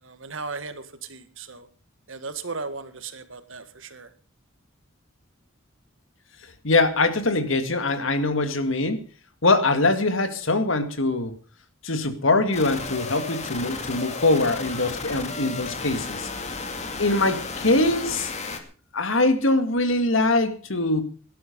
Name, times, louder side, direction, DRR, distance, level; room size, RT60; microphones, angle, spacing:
voice 1, 0.0-1.7 2.1-4.1, right 4 dB, 65° right, 10 dB, 1.8 m, -36 dB
voice 2, 6.6-9.0 9.4-11.3 11.8-16.3 17.0-18.3 18.9-21.0, left 2 dB, 70° left, 9 dB, 2.1 m, -22 dB
sound 1, 12.5-18.6, left 3 dB, 35° left, 2.4 m, -33 dB
18.0 x 11.5 x 5.3 m, 0.36 s
head